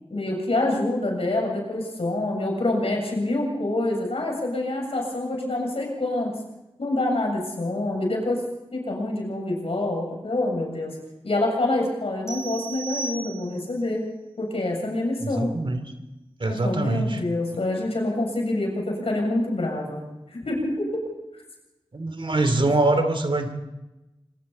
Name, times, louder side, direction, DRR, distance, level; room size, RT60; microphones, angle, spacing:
voice 1, 0.1-6.4 6.8-8.4 8.7-11.0 11.2-14.0 14.4-15.5 16.5-20.0 20.3-21.0 21.3-21.4, left 2 dB, 85° left, 0 dB, 7.3 m, -26 dB
sound 1, 12.3-13.8, right 3 dB, 30° left, 3.1 m, -35 dB
voice 2, 15.2-15.8 16.4-17.2 21.9-23.5, right 2 dB, 60° right, 7 dB, 2.8 m, -23 dB
25.5 x 24.0 x 4.3 m, 0.99 s
wide cardioid pair, 65°, 10 cm